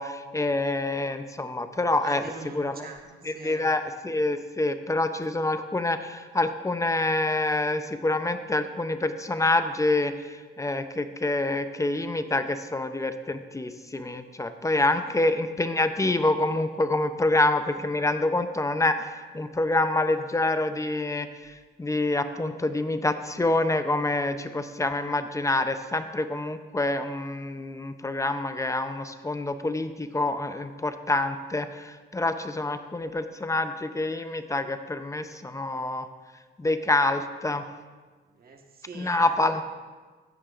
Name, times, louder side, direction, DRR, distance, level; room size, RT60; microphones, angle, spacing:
voice 1, 0.0-2.2 2.5-2.9 3.2-10.3 10.6-21.3 21.8-36.1 36.6-37.6 38.9-39.6, left 2 dB, 15° left, 9 dB, 0.6 m, -26 dB
voice 2, 2.0-3.7 15.0-15.2 38.3-39.4, right 3 dB, 50° right, 2 dB, 1.5 m, -43 dB
14.5 x 9.9 x 2.5 m, 1.4 s
cardioid pair, 90°, 20 cm